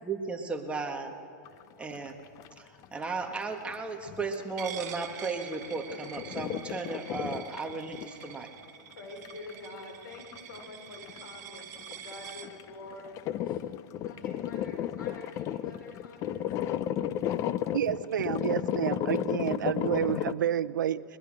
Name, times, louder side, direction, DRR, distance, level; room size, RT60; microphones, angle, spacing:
voice 1, 0.0-1.1 1.8-2.2 2.6-8.5, right 4 dB, 10° right, 3 dB, 1.6 m, -35 dB
sound 1, 1.5-2.6 2.8-4.7 5.0-8.4 8.6-8.7 9.3-9.5 9.8-9.9 10.1-10.6 10.9-20.3, left 11 dB, 30° left, 0.6 m, -34 dB
Coin (dropping), 4.6-12.5, right 10 dB, 60° right, 1.8 m, -46 dB
voice 2, 9.0-13.6 14.0-16.5, left 2 dB, 90° left, 3 dB, 5.4 m, -46 dB
voice 3, 17.7-21.0, right 10 dB, 90° right, 15 dB, 0.7 m, -29 dB
22.0 x 20.5 x 6.4 m, 2.5 s
hypercardioid pair, 140°, 10 cm